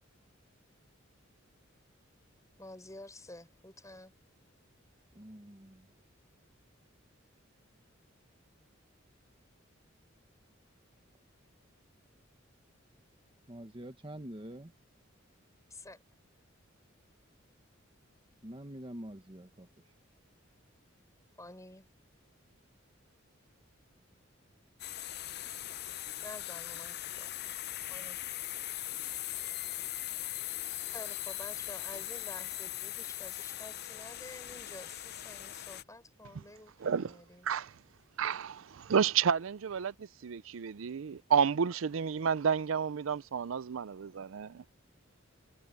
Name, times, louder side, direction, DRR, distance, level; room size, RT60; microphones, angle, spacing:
voice 1, 2.6-4.1 15.7-16.0 21.4-21.9 26.2-27.5 27.9-28.2 30.8-37.5, left 2 dB, 15° left, 6.4 m, -50 dB
voice 2, 5.1-6.0 13.5-14.7 18.4-19.9, right 1 dB, 25° right, 1.2 m, -46 dB
sound 1, 24.8-35.8, left 14 dB, 55° left, 0.7 m, -40 dB
voice 3, 36.8-37.2 37.4-37.8 38.2-44.6, right 7 dB, 75° right, 0.5 m, -31 dB
head